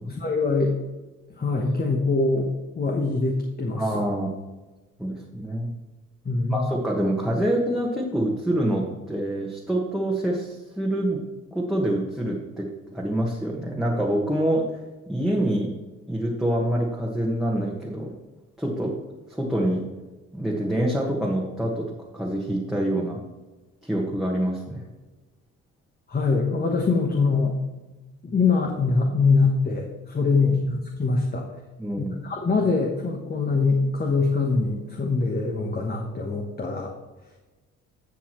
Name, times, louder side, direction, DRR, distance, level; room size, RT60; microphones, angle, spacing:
voice 1, 0.1-0.7 1.4-3.8 6.2-6.7 26.1-27.5 28.2-31.5 32.0-36.9, left 4 dB, 30° left, 1 dB, 1.3 m, -23 dB
voice 2, 3.8-4.3 5.0-5.7 6.5-11.2 11.5-14.7 15.1-15.7 16.1-18.1 18.6-19.0 19.3-19.8 20.3-23.2 23.8-24.8 30.4-30.5 31.8-32.2, right 1 dB, ahead, -3 dB, 1.4 m, -26 dB
12.0 x 7.1 x 3.1 m, 1.2 s
cardioid pair, 90°, 30 cm